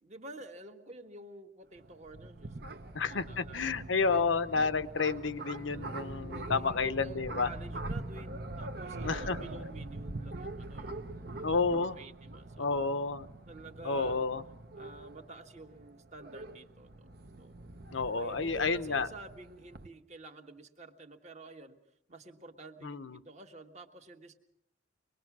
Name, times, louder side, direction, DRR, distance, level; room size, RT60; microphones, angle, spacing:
voice 1, 0.0-4.3 5.6-11.2 11.7-12.9 13.5-14.3 14.7-17.7 18.2-21.8 22.1-24.4, right 2 dB, 35° right, 5 dB, 1.5 m, -50 dB
sound 1, 1.7-19.9, right 2 dB, 55° right, 1.0 m, -43 dB
voice 2, 2.9-7.5 9.0-9.4 11.4-12.0 12.6-13.3 13.8-14.4 17.9-19.1 22.8-23.2, left 4 dB, 80° left, 12 dB, 0.8 m, -30 dB
24.5 x 20.5 x 6.1 m, 0.78 s
head